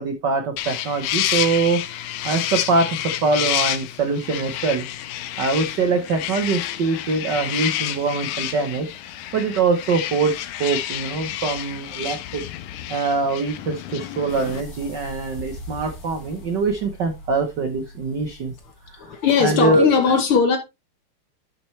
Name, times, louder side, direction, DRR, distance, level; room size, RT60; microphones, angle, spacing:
voice 1, 0.0-4.9 5.4-8.9 9.3-12.4 12.9-18.5 18.9-19.0 19.4-19.9, right 4 dB, 80° right, 0.9 m, -23 dB
sound 1, 0.6-14.6, left 13 dB, 85° left, 2.2 m, -29 dB
sound 2, 14.3-19.6, equal, 35° left, 1.6 m, -41 dB
voice 2, 19.0-20.6, left 6 dB, 65° left, 1.4 m, -19 dB
11.0 x 6.2 x 3.2 m
omnidirectional pair, 3.5 m